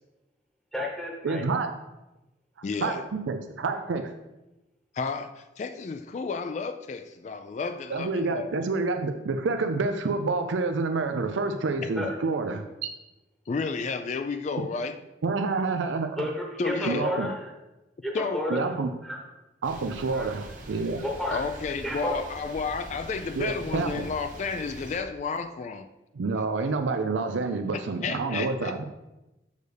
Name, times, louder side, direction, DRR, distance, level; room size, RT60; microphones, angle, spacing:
voice 1, 0.7-1.4 12.0-12.2 16.2-17.5 18.0-18.6 19.0-19.2 20.1-20.3 21.0-21.4 21.8-22.2, left 1 dB, ahead, -2 dB, 1.0 m, -31 dB
voice 2, 1.2-1.7 2.8-4.1 7.9-12.9 15.2-16.2 16.9-17.3 18.5-18.9 19.6-21.0 23.4-24.0 26.1-28.8, right 3 dB, 90° right, 7 dB, 0.5 m, -28 dB
voice 3, 2.6-3.0 4.9-8.5 13.5-15.0 16.6-17.1 18.1-18.5 21.3-25.9 28.0-28.8, left 4 dB, 40° left, 9 dB, 0.3 m, -32 dB
sound 1, 19.6-25.0, right 1 dB, 45° right, 1.1 m, -43 dB
6.5 x 6.4 x 3.4 m, 0.98 s
head